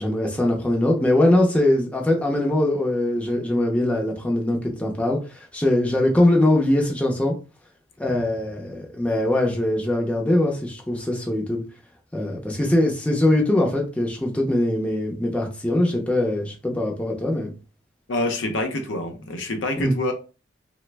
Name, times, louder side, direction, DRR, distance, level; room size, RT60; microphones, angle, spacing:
voice 1, 0.0-7.3 8.0-11.6 12.1-17.5 19.8-19.9, left 1 dB, 5° left, 0.5 m, -22 dB
voice 2, 18.1-20.1, left 2 dB, 70° left, 0.6 m, -26 dB
3.2 x 2.0 x 3.3 m
head